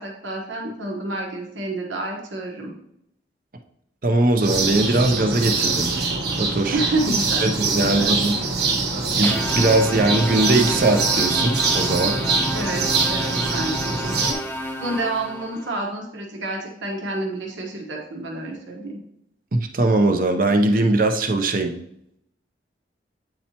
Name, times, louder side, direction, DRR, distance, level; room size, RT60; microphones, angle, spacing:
voice 1, 0.0-2.7 6.7-7.5 7.8-8.1 12.5-14.4 14.8-19.0, right 2 dB, 85° right, -1 dB, 1.2 m, -29 dB
voice 2, 4.0-5.9 6.4-6.8 7.4-8.4 9.2-12.2 19.5-21.8, right 2 dB, 45° right, 5 dB, 0.6 m, -20 dB
sound 1, 4.4-14.3, right 4 dB, 65° right, 1.2 m, -23 dB
sound 2, 9.2-15.7, equal, 10° left, 0.4 m, -31 dB
8.7 x 4.3 x 2.9 m, 0.76 s
head